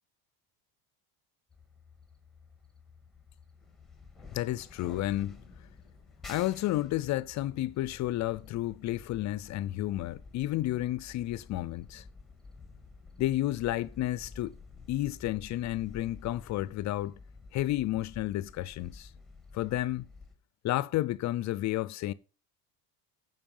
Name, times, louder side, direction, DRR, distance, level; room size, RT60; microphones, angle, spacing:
sound 1, 1.5-20.4, left 4 dB, ahead, 1.8 m, -51 dB
voice 1, 4.3-5.4 6.3-12.0 13.2-14.5 14.9-17.2 17.5-19.1 19.5-20.1 20.6-22.1, left 15 dB, 40° left, 0.5 m, -31 dB
14.5 x 5.5 x 5.4 m
cardioid pair, 130°, 43 cm